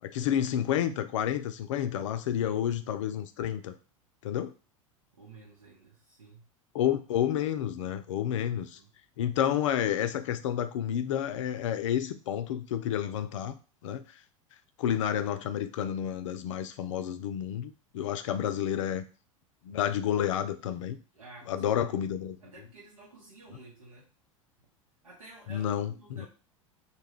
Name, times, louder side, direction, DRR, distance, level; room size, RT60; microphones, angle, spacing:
voice 1, 0.0-3.7 4.2-4.5 6.7-8.8 9.2-14.0 14.8-19.0 19.6-21.0 21.5-22.4 25.5-26.3, left 10 dB, 65° left, 10 dB, 0.4 m, -30 dB
voice 2, 5.1-6.5 8.7-8.9 18.2-18.4 21.1-24.1 25.0-26.3, right 3 dB, 80° right, -4 dB, 0.8 m, -52 dB
2.2 x 2.2 x 3.4 m, 0.36 s
figure-of-eight pair, 85°, 17 cm